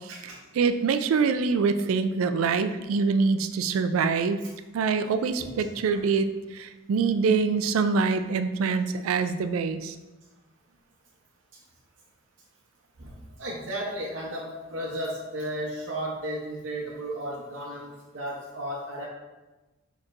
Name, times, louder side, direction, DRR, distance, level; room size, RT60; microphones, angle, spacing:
voice 1, 0.5-4.4 4.7-6.3 6.5-9.9, right 5 dB, 90° right, 10 dB, 0.3 m, -25 dB
voice 2, 13.0-19.1, right 1 dB, 65° right, -5 dB, 0.7 m, -34 dB
6.5 x 2.9 x 2.5 m, 1.1 s
head